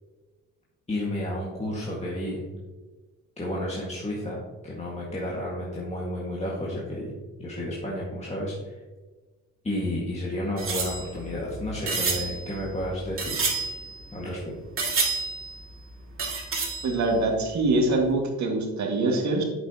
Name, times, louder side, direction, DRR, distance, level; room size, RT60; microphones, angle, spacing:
voice 1, 0.9-2.4 3.4-7.1 7.4-8.8 9.6-13.5 14.1-14.4, left 1 dB, 20° left, -4 dB, 1.8 m, -31 dB
sound 1, 10.6-14.4 14.8-15.7 16.2-17.3 17.7-17.8 18.0-18.1, right 4 dB, 45° right, 2.4 m, -30 dB
voice 2, 16.8-19.4, right 2 dB, 65° right, 1 dB, 2.0 m, -24 dB
8.7 x 7.3 x 2.9 m, 1.3 s
cardioid pair, 90°, 30 cm